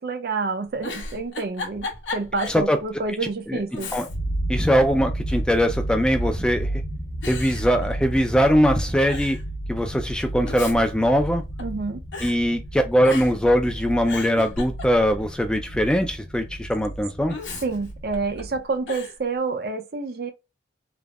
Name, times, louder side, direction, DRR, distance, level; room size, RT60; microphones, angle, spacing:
voice 1, 0.0-1.9 2.1-3.9 11.6-12.0 17.6-20.3, right 4 dB, 55° right, 0.5 m, -28 dB
Giggle, 0.6-2.6 3.0-3.1 3.7-4.4 4.7-5.5 6.3-6.7 7.2-8.4 8.7-8.8 9.1-9.4 10.2-11.8 12.1-12.4 13.0-13.5 13.9-15.2 17.3-18.4 18.9-19.2, left 3 dB, 90° left, 0.9 m, -35 dB
sound 1, 4.1-18.6, right 1 dB, 50° left, 0.6 m, -32 dB
voice 2, 4.5-6.7 7.3-9.4 9.7-11.4 12.2-17.4, equal, 5° left, 0.3 m, -21 dB
3.3 x 2.0 x 2.3 m
head